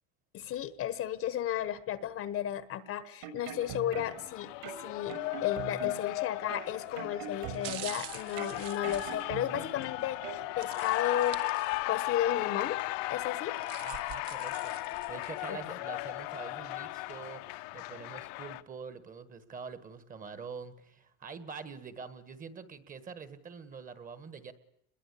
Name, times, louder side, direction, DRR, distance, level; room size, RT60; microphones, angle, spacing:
voice 1, 0.3-11.4 11.9-12.8 13.1-13.5 15.5-15.7, left 11 dB, 35° left, 15 dB, 1.2 m, -34 dB
sound 1, 3.0-4.3 4.6-6.1 6.5-8.0 8.4-9.9 10.2-10.4, right 8 dB, 65° right, 7.6 m, -42 dB
Cheering, 3.4-18.6, left 19 dB, 65° left, 1.2 m, -36 dB
sound 2, 6.4-6.7 7.4-9.9 10.6-12.1 12.4-12.5 13.3-15.5 16.0-16.1, right 12 dB, 50° right, 1.8 m, -46 dB
voice 2, 13.8-24.5, right 5 dB, 20° right, 13 dB, 1.5 m, -45 dB
28.5 x 22.0 x 8.4 m, 0.73 s
supercardioid pair, 155°, 42 cm